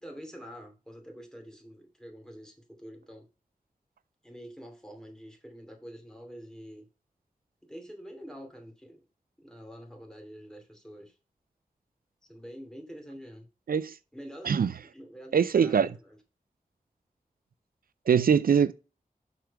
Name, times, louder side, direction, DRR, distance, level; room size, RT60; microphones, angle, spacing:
voice 1, 0.0-3.3 4.2-6.9 7.6-9.0 9.4-11.2 12.2-13.5 14.1-16.2, equal, 5° left, 2.5 m, -46 dB
voice 2, 15.3-15.9 18.1-18.7, right 7 dB, 80° right, 0.4 m, -22 dB
6.4 x 4.6 x 4.7 m
wide cardioid pair, 55°, 15 cm